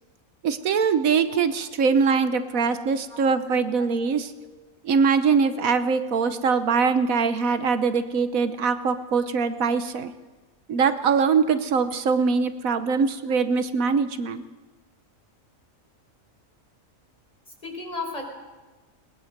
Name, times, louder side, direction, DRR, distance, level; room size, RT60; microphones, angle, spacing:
voice 1, 0.4-4.3 4.8-10.1 10.7-14.4, right 5 dB, 80° right, 11 dB, 1.4 m, -22 dB
voice 2, 17.6-18.2, left 3 dB, 30° left, 1 dB, 4.9 m, -35 dB
21.0 x 20.0 x 6.7 m, 1.2 s
omnidirectional pair, 1.4 m